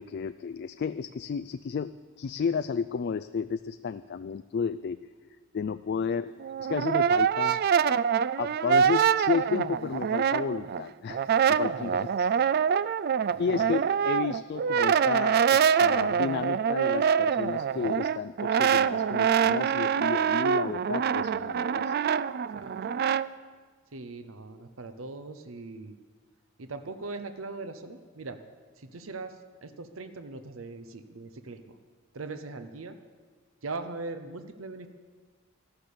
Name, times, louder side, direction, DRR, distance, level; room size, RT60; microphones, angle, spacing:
voice 1, 0.0-5.0 5.5-6.3 6.6-7.6 8.4-11.2 11.5-12.3 13.4-21.9, left 6 dB, 55° left, 12 dB, 0.3 m, -32 dB
Brass instrument, 6.4-10.8 11.1-23.3, right 7 dB, 50° right, 0.3 m, -25 dB
voice 2, 13.3-13.7 22.5-22.8 23.9-26.0 26.6-28.4 28.8-29.4 29.6-31.8 32.1-33.0 33.6-34.9, right 3 dB, 80° right, 9 dB, 0.8 m, -40 dB
14.0 x 11.5 x 6.8 m, 1.5 s
head